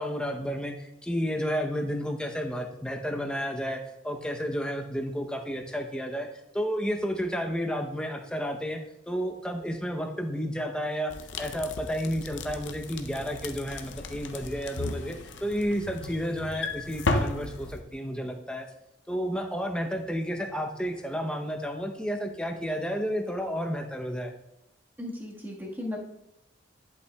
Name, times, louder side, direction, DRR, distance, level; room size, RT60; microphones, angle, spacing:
voice 1, 0.0-6.3 6.5-8.8 9.1-11.1 11.4-18.7 19.1-24.3, equal, 5° left, 3 dB, 0.8 m, -31 dB
sound 1, 11.1-17.8, left 2 dB, 75° left, 0.7 m, -34 dB
voice 2, 25.0-26.0, left 1 dB, 10° right, -3 dB, 1.6 m, -36 dB
11.0 x 8.3 x 2.3 m, 0.85 s
head